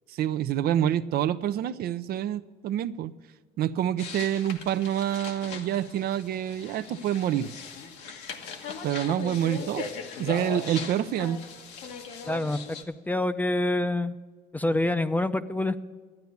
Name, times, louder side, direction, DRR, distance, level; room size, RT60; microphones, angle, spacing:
voice 1, 0.1-3.1 3.6-7.5 8.8-9.9 10.2-11.4, right 10 dB, 65° right, 0.5 m, -27 dB
sound 1, 4.0-12.8, left 5 dB, 90° left, 1.4 m, -39 dB
voice 2, 12.2-12.6 12.9-14.2 14.5-15.8, left 2 dB, 10° left, 0.5 m, -26 dB
13.0 x 9.4 x 7.0 m
cardioid pair, 110°, 17 cm